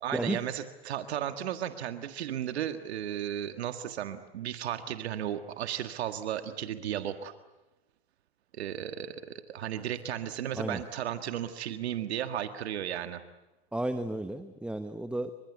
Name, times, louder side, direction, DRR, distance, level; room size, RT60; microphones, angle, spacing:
voice 1, 0.0-7.3 8.5-13.2, right 10 dB, 85° right, 8 dB, 1.7 m, -34 dB
voice 2, 13.7-15.3, right 1 dB, 5° right, 9 dB, 1.2 m, -33 dB
27.0 x 24.5 x 8.2 m, 1.0 s
hypercardioid pair, 110°, 32 cm